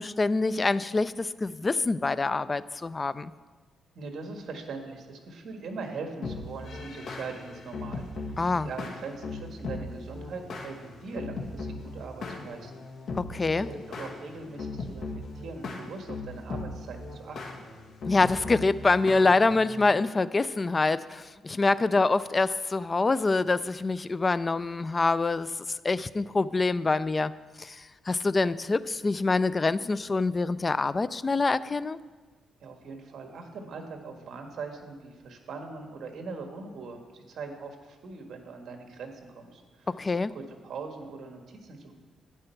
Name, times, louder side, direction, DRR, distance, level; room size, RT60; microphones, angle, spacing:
voice 1, 0.0-3.3 8.4-8.7 13.2-13.7 18.0-25.5 25.8-27.3 27.6-32.0 39.9-40.3, left 3 dB, 25° left, 16 dB, 0.3 m, -25 dB
voice 2, 3.9-13.1 13.5-17.6 32.6-40.0 40.3-41.9, right 4 dB, 60° right, 4 dB, 1.6 m, -41 dB
sound 1, 6.2-19.9, left 3 dB, 65° left, 1.7 m, -38 dB
11.5 x 9.8 x 4.6 m, 1.4 s
cardioid pair, 130°, 0 cm